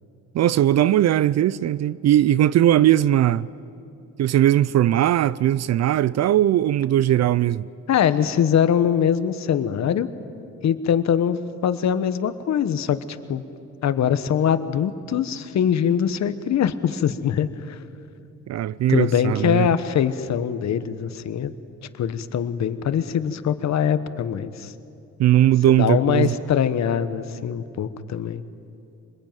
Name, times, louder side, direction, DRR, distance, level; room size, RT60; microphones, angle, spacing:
voice 1, 0.3-3.5 4.2-7.7 18.5-19.7 25.2-26.4, right 12 dB, 60° right, 0.5 m, -19 dB
voice 2, 7.9-10.1 10.6-13.0 13.3-13.4 13.8-17.8 18.9-21.5 22.0-24.7 25.7-28.4, left 8 dB, 65° left, 1.3 m, -22 dB
26.0 x 20.5 x 9.2 m
cardioid pair, 90°, 30 cm